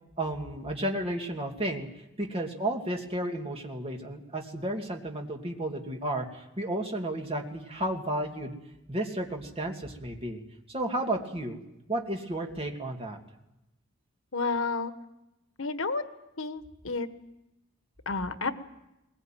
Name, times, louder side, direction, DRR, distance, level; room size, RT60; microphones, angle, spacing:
voice 1, 0.2-1.9 2.2-8.5 8.9-10.4 10.7-11.6 11.9-13.2, right 1 dB, 30° right, 2 dB, 2.5 m, -32 dB
voice 2, 14.3-14.9 15.6-16.1 16.4-17.1 18.0-18.5, left 4 dB, 85° left, 10 dB, 1.4 m, -30 dB
21.0 x 20.5 x 9.2 m, 0.92 s
head